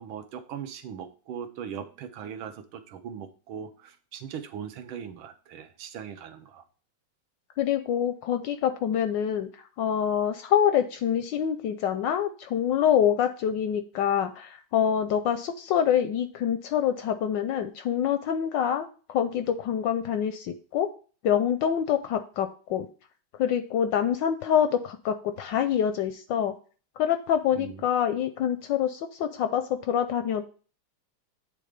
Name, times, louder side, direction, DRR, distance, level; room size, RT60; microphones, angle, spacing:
voice 1, 0.0-6.6 27.5-27.9, right 8 dB, 75° right, 7 dB, 1.6 m, -39 dB
voice 2, 7.6-9.5 9.8-20.9 21.2-22.9 23.4-26.5 27.0-30.4, left 9 dB, 75° left, 9 dB, 1.1 m, -26 dB
8.6 x 3.6 x 5.0 m, 0.39 s
omnidirectional pair, 2.3 m